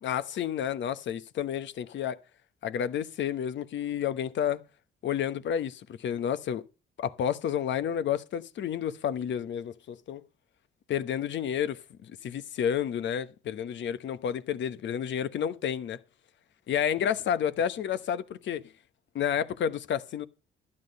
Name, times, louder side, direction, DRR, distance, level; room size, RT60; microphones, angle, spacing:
voice 1, 0.0-2.2 2.6-4.6 5.0-6.6 7.0-10.2 10.9-11.8 12.1-16.0 16.7-18.6 19.1-20.3, left 9 dB, 65° left, 1.0 m, -30 dB
12.0 x 9.9 x 5.3 m
cardioid pair, 90°, 20 cm